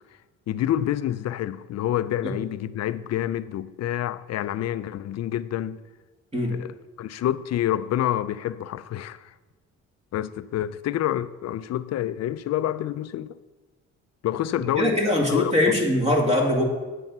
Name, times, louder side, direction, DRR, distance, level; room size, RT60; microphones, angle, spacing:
voice 1, 0.5-5.8 6.5-9.3 10.1-13.4 14.2-15.0 15.3-15.8, left 12 dB, 60° left, 0.5 m, -28 dB
voice 2, 14.8-16.6, left 1 dB, 20° right, 2.2 m, -22 dB
8.4 x 7.5 x 5.4 m
cardioid pair, 90°, 30 cm